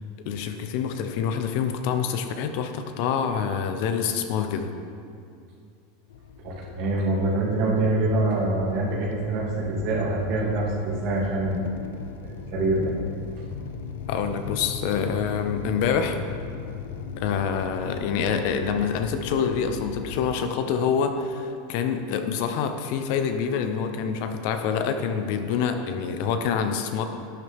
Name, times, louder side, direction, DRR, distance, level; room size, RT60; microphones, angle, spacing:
voice 1, 0.2-4.7 14.1-16.2 17.2-27.0, left 7 dB, 55° left, 7 dB, 0.8 m, -26 dB
sound 1, 6.1-20.4, left 6 dB, 85° left, 0.8 m, -38 dB
voice 2, 6.4-11.6 12.2-12.9, right 2 dB, 50° right, -4 dB, 2.7 m, -25 dB
11.5 x 9.7 x 3.6 m, 2.4 s
supercardioid pair, 155°, 0 cm